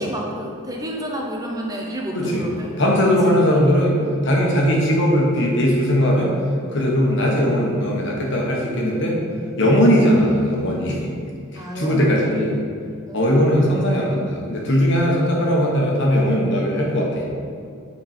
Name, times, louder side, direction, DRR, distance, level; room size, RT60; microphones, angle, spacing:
voice 1, 0.0-2.7 3.3-3.4 11.6-12.4 12.8-13.7, equal, 15° right, 0 dB, 0.6 m, -31 dB
voice 2, 2.8-4.0 4.2-6.4 6.7-9.2 9.6-11.1 11.5-12.6 13.1-17.3, equal, 55° left, -2 dB, 1.3 m, -19 dB
9.2 x 4.4 x 4.3 m, 2.3 s
head